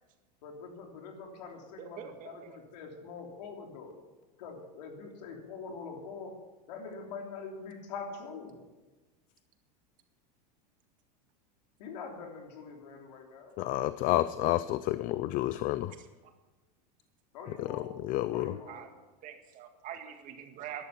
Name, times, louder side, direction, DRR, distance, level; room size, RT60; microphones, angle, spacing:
voice 1, 0.4-3.9 4.4-6.4 6.7-8.6 11.8-13.6 17.3-18.0 18.3-18.9, left 4 dB, 80° left, 2 dB, 3.4 m, -44 dB
voice 2, 1.8-2.6 16.0-16.1 18.7-18.9 19.2-20.8, right 9 dB, 40° right, 6 dB, 1.8 m, -44 dB
voice 3, 13.6-15.9 17.6-17.7 18.0-18.5, left 15 dB, 40° left, 14 dB, 0.5 m, -30 dB
13.5 x 11.0 x 6.0 m, 1.2 s
supercardioid pair, 130°, 21 cm